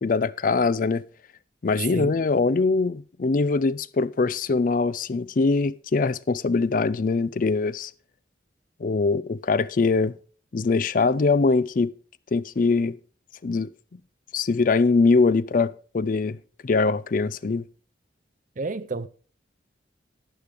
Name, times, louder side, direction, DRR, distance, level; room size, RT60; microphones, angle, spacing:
voice 1, 0.0-1.0 1.6-7.9 8.8-10.2 10.5-11.9 12.3-13.0 13.4-13.7 14.3-16.4 16.6-17.6, left 4 dB, 45° left, 0.4 m, -22 dB
voice 2, 18.6-19.1, right 3 dB, 45° right, 0.6 m, -30 dB
11.5 x 9.9 x 3.4 m
head